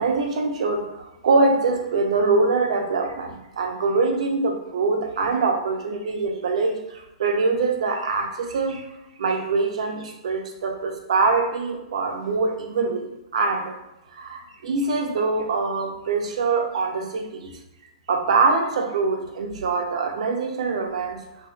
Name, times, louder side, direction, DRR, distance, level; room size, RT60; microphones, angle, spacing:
voice 1, 0.0-8.9 9.2-13.8 14.1-17.5 18.1-21.2, right 4 dB, 75° right, 3 dB, 0.6 m, -24 dB
3.7 x 2.6 x 2.2 m, 0.91 s
supercardioid pair, 180°, 4 cm